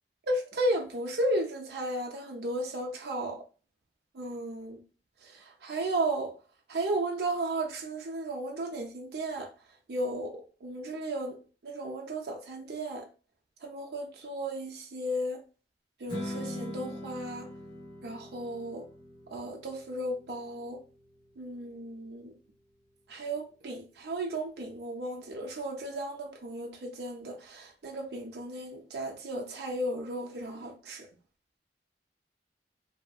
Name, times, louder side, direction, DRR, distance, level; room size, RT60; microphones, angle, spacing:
voice 1, 0.3-3.4 4.1-4.8 5.2-6.4 6.7-9.5 9.9-11.4 11.6-13.1 13.6-15.4 16.0-17.5 18.0-18.9 19.3-20.8 21.4-22.3 23.1-31.1, right 1 dB, 65° right, 0.5 m, -34 dB
Strum, 16.1-22.4, left 1 dB, 25° left, 1.1 m, -43 dB
2.6 x 2.5 x 2.3 m
head